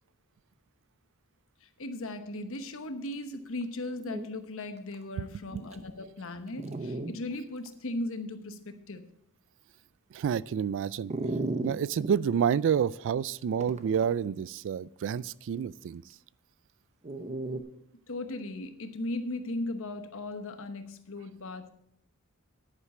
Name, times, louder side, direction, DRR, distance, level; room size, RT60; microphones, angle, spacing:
voice 1, 1.6-9.0 18.1-21.7, left 2 dB, 65° left, 8 dB, 1.1 m, -37 dB
Dog, 3.6-3.7 4.0-4.3 4.9-5.0 5.7-5.8 6.6-7.1 7.7-7.8 11.1-12.1 13.6-14.1 17.0-17.6, right 2 dB, 30° right, 0.7 m, -34 dB
voice 2, 10.1-11.1 11.6-16.0, right 7 dB, 60° right, 20 dB, 0.3 m, -29 dB
10.0 x 9.8 x 4.3 m, 0.68 s
head